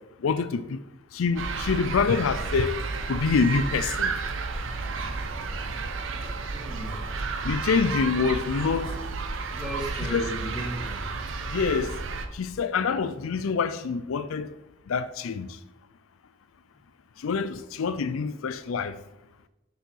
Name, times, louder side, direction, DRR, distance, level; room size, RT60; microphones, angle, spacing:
voice 1, 0.2-0.8 1.1-2.8 3.1-4.1 7.4-8.9 10.1-10.3 11.5-11.9 12.3-14.5 14.9-15.5 17.2-18.9, left 5 dB, 75° left, 0.4 m, -26 dB
sound 1, 1.4-12.3, right 4 dB, 65° right, 0.8 m, -32 dB
voice 2, 6.5-7.1 9.5-11.0, right 1 dB, 5° right, 1.9 m, -36 dB
6.4 x 5.4 x 6.3 m
head